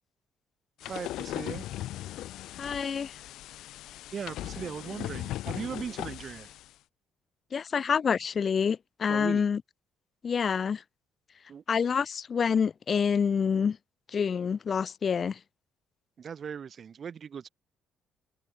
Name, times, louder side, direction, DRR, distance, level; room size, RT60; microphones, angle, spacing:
sound 1, 0.8-6.7, left 14 dB, 80° left, 4.6 m, -38 dB
voice 1, 0.8-1.7 4.1-6.5 9.1-9.5 11.5-11.6 16.2-17.5, right 7 dB, 40° right, 4.0 m, -38 dB
voice 2, 2.6-3.2 7.5-9.6 10.2-10.8 11.7-13.8 14.1-15.4, left 6 dB, 35° left, 2.2 m, -27 dB
cardioid pair, 135°, 0 cm